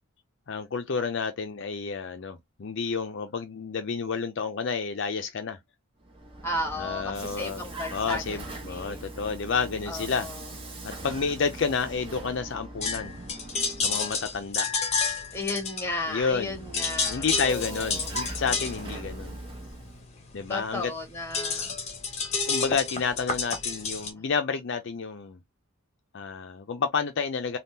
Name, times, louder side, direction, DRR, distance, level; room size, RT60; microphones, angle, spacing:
voice 1, 0.5-5.6 6.8-10.3 10.8-13.2 13.8-14.7 16.1-16.6 17.1-19.4 20.3-20.9 22.5-25.4 26.1-27.6, left 5 dB, 55° left, 0.5 m, -30 dB
Vehicle, 6.0-14.5 16.2-20.1, right 2 dB, 25° right, 0.9 m, -41 dB
voice 2, 6.4-9.1 9.9-10.4 15.3-18.1 20.5-21.7, left 1 dB, 10° left, 1.1 m, -34 dB
sound 1, 12.8-16.4 16.6-24.1, left 5 dB, 30° left, 0.8 m, -30 dB
3.6 x 2.3 x 2.7 m
head